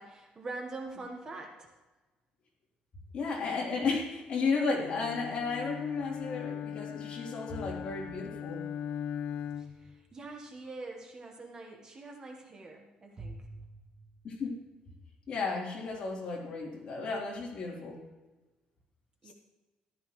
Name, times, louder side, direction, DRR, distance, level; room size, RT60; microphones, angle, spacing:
voice 1, 0.0-1.7 9.5-13.7 19.2-19.3, right 3 dB, 25° right, 2 dB, 1.2 m, -44 dB
voice 2, 3.1-8.6 14.2-14.6 15.3-18.0, left 4 dB, 40° left, -3 dB, 3.2 m, -33 dB
Bowed string instrument, 4.7-9.9, left 8 dB, 70° left, 0.5 m, -39 dB
14.5 x 12.5 x 3.1 m, 1.2 s
cardioid pair, 170°, 3 cm